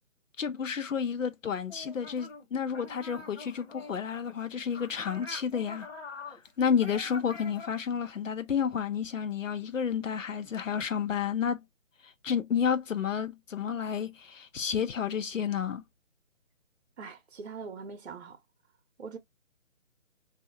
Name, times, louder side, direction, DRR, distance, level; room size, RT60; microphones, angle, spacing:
voice 1, 0.4-5.9 6.6-11.6 12.0-15.8, left 7 dB, 75° left, 0.8 m, -31 dB
sound 1, 1.7-2.5 2.7-7.7, left 3 dB, 55° left, 1.2 m, -45 dB
voice 2, 17.0-18.4 19.0-19.2, right 5 dB, 55° right, 0.8 m, -42 dB
3.2 x 2.7 x 2.7 m
hypercardioid pair, 170°, 39 cm